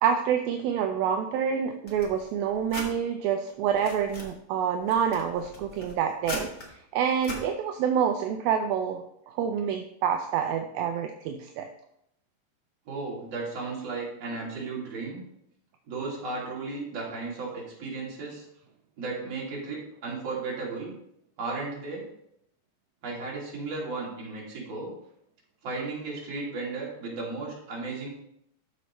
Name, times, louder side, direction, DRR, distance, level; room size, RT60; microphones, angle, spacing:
voice 1, 0.0-6.5 6.9-11.7, right 8 dB, 80° right, 4 dB, 2.2 m, -27 dB
sound 1, 1.9-2.9 3.5-4.3 4.8-6.7 7.2-7.4, left 1 dB, 55° left, 0.8 m, -39 dB
voice 2, 12.9-15.2 15.9-18.4 19.0-20.9 21.4-22.0 23.0-24.9 25.6-28.1, right 3 dB, 40° right, -4 dB, 3.4 m, -35 dB
13.0 x 6.8 x 3.2 m, 0.75 s
omnidirectional pair, 4.8 m